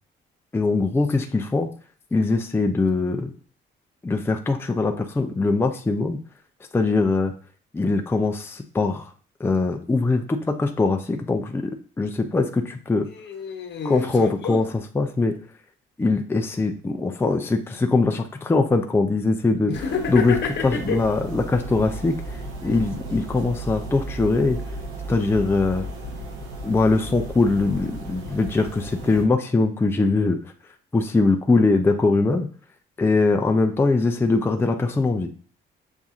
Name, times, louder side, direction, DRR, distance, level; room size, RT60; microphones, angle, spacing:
voice 1, 0.5-1.7 2.1-3.3 4.0-6.2 6.7-7.3 7.7-9.1 9.4-13.1 13.8-14.7 14.9-15.4 16.0-19.7 20.1-20.4 20.6-24.6 25.1-25.8 26.6-30.4 30.9-32.5 33.0-35.3, left 3 dB, 10° left, 0.5 m, -22 dB
voice 2, 13.1-14.6 19.7-21.0, left 6 dB, 65° left, 0.9 m, -28 dB
sound 1, 19.7-29.2, right 2 dB, 85° right, 0.9 m, -35 dB
7.1 x 2.6 x 2.4 m
cardioid pair, 90°, 20 cm